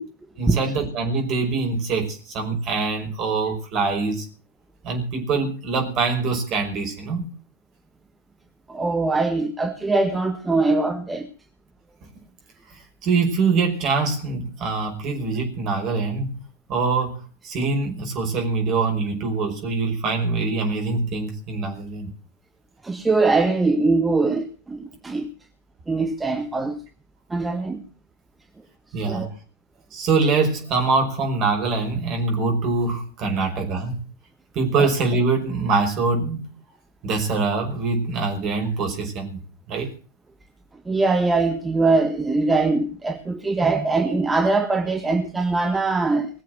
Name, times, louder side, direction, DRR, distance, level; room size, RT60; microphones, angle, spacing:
voice 1, 0.4-4.3 4.8-7.3 13.0-16.3 16.7-22.1 28.9-29.3 29.9-34.0 34.5-36.5 37.0-39.4 39.7-39.9, right 4 dB, 35° right, 5.6 m, -24 dB
voice 2, 8.7-11.3 22.8-24.8 25.0-25.3 25.9-26.8 27.3-27.8 29.1-29.3 34.8-34.9 40.9-46.3, right 3 dB, 10° right, 1.5 m, -22 dB
20.5 x 7.5 x 7.8 m
figure-of-eight pair, 90°, 0 cm